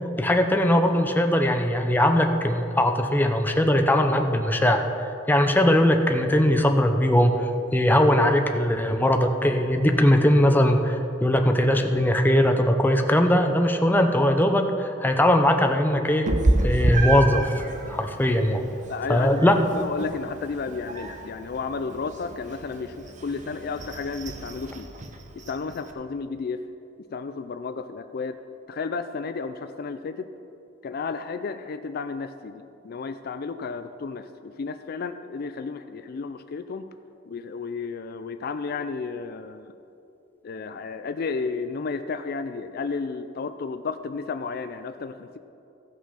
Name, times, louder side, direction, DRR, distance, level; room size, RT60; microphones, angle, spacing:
voice 1, 0.2-4.9 5.3-16.3 16.6-17.5 17.9-18.6 19.1-19.5, left 1 dB, 10° left, 5 dB, 0.7 m, -20 dB
Meow, 16.3-25.9, right 1 dB, 40° right, 0.9 m, -30 dB
voice 2, 18.9-24.9 25.4-26.6 27.1-28.4 28.7-30.3 30.8-36.9 37.3-39.7 40.4-45.4, left 4 dB, 55° left, 10 dB, 0.4 m, -32 dB
15.5 x 5.9 x 5.6 m, 2.7 s
head